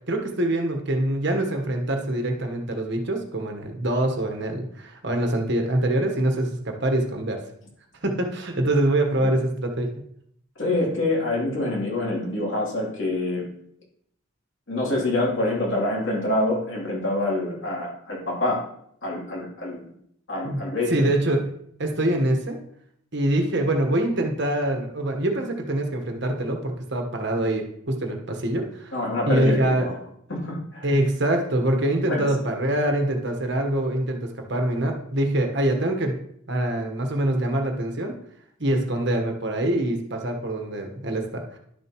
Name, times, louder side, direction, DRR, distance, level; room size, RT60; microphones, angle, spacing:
voice 1, 0.1-7.4 8.0-9.9 20.4-21.5 21.8-22.6 23.1-29.0 29.3-29.9 30.8-36.2 36.5-38.1 38.6-41.6, right 1 dB, 55° right, 4 dB, 1.3 m, -24 dB
voice 2, 10.6-13.4 14.7-18.6 19.0-19.8 20.3-21.1 28.9-29.9 30.3-30.9 32.1-32.3, left 2 dB, 60° left, -3 dB, 3.0 m, -26 dB
11.5 x 6.9 x 3.0 m, 0.70 s
head